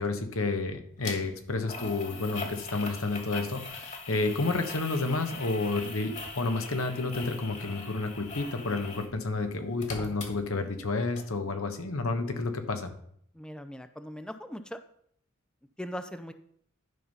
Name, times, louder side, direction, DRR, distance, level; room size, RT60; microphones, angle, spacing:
voice 1, 0.0-12.9, left 3 dB, 90° left, 7 dB, 1.3 m, -30 dB
sound 1, 1.0-1.2 1.7-9.1 9.4-10.9 11.2-11.3, left 3 dB, 35° left, 1.8 m, -41 dB
voice 2, 13.4-14.8 15.8-16.3, equal, 5° left, 10 dB, 0.5 m, -39 dB
11.5 x 5.4 x 5.6 m, 0.67 s
head